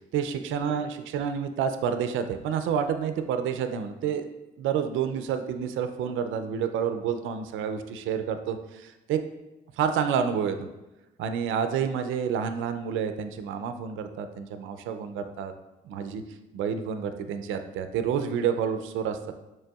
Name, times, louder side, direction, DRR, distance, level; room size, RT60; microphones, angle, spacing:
voice 1, 0.1-4.3 4.6-9.2 9.8-10.6 11.2-15.5 15.8-16.2 16.5-19.3, right 7 dB, 80° right, 8 dB, 0.4 m, -29 dB
6.6 x 3.3 x 2.3 m, 1.0 s
cardioid pair, 90°, 20 cm